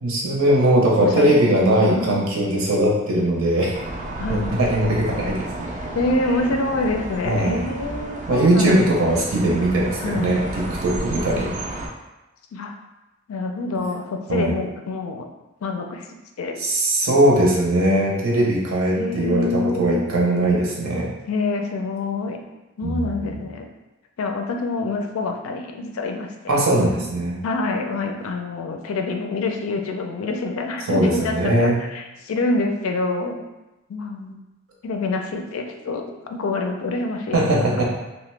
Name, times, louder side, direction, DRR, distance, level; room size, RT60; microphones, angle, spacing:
voice 1, 0.0-3.7 4.3-5.7 7.2-7.6 8.3-10.4 10.8-11.5 14.3-14.5 16.6-21.1 22.8-23.4 26.5-27.4 30.9-31.7 37.3-37.9, right 1 dB, 80° right, -3 dB, 0.7 m, -20 dB
voice 2, 1.0-1.4 1.9-2.2 4.2-4.5 5.7-9.2 10.0-10.4 12.5-12.7 13.3-15.3 15.6-16.1 16.4-16.5 19.0-20.1 21.3-22.4 22.8-23.7 24.2-26.6 27.4-33.4 33.9-34.4 34.8-37.4, left 3 dB, 75° left, 4 dB, 0.4 m, -26 dB
sound 1, 3.7-11.9, right 1 dB, 35° right, 0.4 m, -32 dB
2.8 x 2.1 x 3.2 m, 1.0 s
head